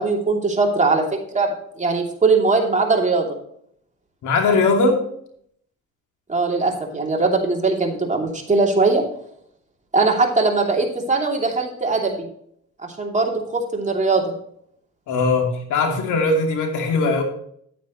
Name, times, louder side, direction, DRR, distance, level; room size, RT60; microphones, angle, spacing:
voice 1, 0.0-1.5 1.8-3.3 6.3-9.0 9.9-12.3 13.0-14.3, right 3 dB, 25° right, 0 dB, 2.8 m, -20 dB
voice 2, 4.2-5.0 15.1-17.2, left 3 dB, 80° left, 3 dB, 2.7 m, -19 dB
10.5 x 9.3 x 3.1 m, 0.66 s
cardioid pair, 90°, 30 cm